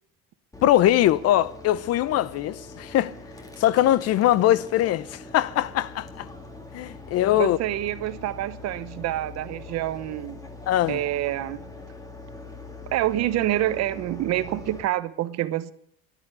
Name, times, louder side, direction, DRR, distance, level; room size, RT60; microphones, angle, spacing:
sound 1, 0.5-14.8, left 3 dB, 10° left, 2.0 m, -42 dB
voice 1, 0.6-3.1 3.6-6.3 6.7-7.6 10.7-11.0, left 13 dB, 50° left, 0.8 m, -21 dB
voice 2, 7.3-10.4 10.9-11.7 12.9-15.7, right 14 dB, 55° right, 1.0 m, -27 dB
13.0 x 11.5 x 8.2 m
supercardioid pair, 105°, 31 cm